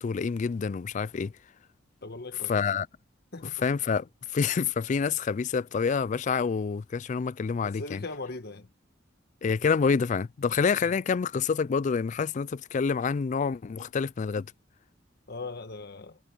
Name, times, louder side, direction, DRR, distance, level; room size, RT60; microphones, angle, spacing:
voice 1, 0.0-1.3 2.5-2.9 3.6-4.1 4.3-8.0 9.4-14.5, left 5 dB, 40° left, 0.3 m, -27 dB
voice 2, 2.0-2.5 3.3-3.6 7.6-8.7 10.8-10.9 15.3-16.2, left 3 dB, 55° left, 1.6 m, -39 dB
head